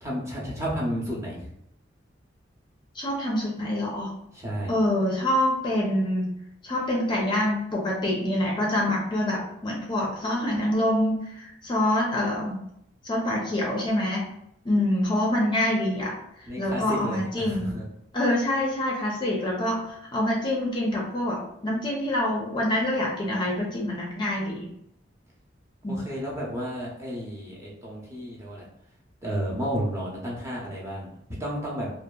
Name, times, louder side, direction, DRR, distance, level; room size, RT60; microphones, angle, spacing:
voice 1, 0.0-1.5 4.3-4.7 16.5-17.8 25.9-28.6 29.2-31.1 31.4-31.9, equal, 15° right, -5 dB, 0.6 m, -32 dB
voice 2, 2.9-4.1 4.7-6.3 6.6-12.6 13.0-14.3 14.6-17.7 18.1-24.7 25.8-26.0, left 1 dB, 25° left, -2 dB, 0.4 m, -26 dB
2.7 x 2.3 x 2.2 m, 0.76 s
head